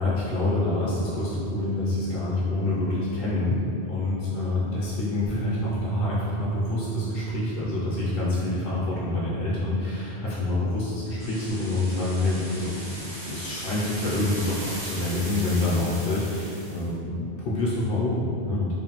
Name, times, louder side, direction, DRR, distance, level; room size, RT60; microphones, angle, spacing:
voice 1, 0.0-3.6 3.9-18.7, left 2 dB, 60° left, -8 dB, 0.7 m, -27 dB
Bass guitar, 5.3-11.5, right 7 dB, 85° right, 0.9 m, -34 dB
sound 1, 11.2-16.9, right 1 dB, 30° right, 0.5 m, -38 dB
3.1 x 2.1 x 2.9 m, 2.5 s
omnidirectional pair, 1.1 m